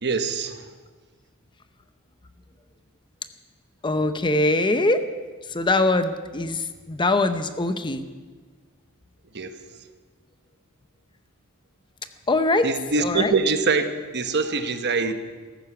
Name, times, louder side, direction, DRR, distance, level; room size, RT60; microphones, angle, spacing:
voice 1, 0.0-0.7 9.3-9.5 12.6-13.9 14.1-15.1, right 4 dB, 50° right, 8 dB, 1.1 m, -23 dB
voice 2, 3.8-5.1 5.4-8.1 12.3-12.7 13.0-13.4, left 2 dB, 20° left, 10 dB, 0.7 m, -22 dB
15.0 x 14.5 x 5.9 m, 1.4 s
head